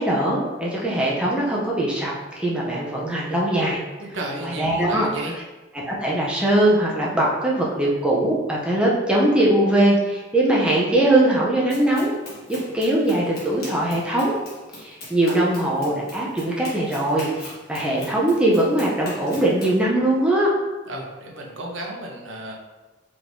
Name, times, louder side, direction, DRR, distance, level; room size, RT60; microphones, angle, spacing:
voice 1, 0.0-3.8 4.4-5.1 5.7-12.1 12.5-14.3 14.8-20.5, right 1 dB, 5° right, -5 dB, 0.6 m, -21 dB
voice 2, 4.0-5.4 20.9-22.5, right 1 dB, 70° right, -1 dB, 0.8 m, -33 dB
Run, 11.7-19.8, left 1 dB, 50° left, 1.4 m, -40 dB
4.7 x 3.5 x 2.6 m, 1.2 s
head